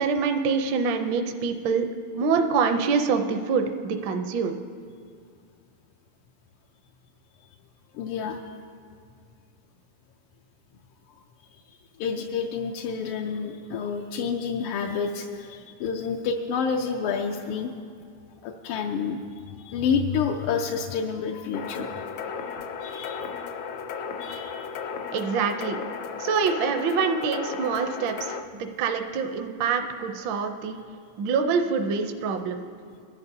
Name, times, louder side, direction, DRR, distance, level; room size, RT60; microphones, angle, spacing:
voice 1, 0.0-1.8 2.1-4.6 25.1-25.8 26.2-30.8 31.2-32.6, right 5 dB, 75° right, 5 dB, 1.3 m, -25 dB
voice 2, 7.9-8.4 12.0-17.7 18.4-22.0 22.8-23.3 24.2-24.9, left 6 dB, 90° left, 2 dB, 1.6 m, -29 dB
sound 1, 21.5-28.4, left 6 dB, 75° left, 1.2 m, -35 dB
22.0 x 10.5 x 2.7 m, 2.2 s
omnidirectional pair, 2.4 m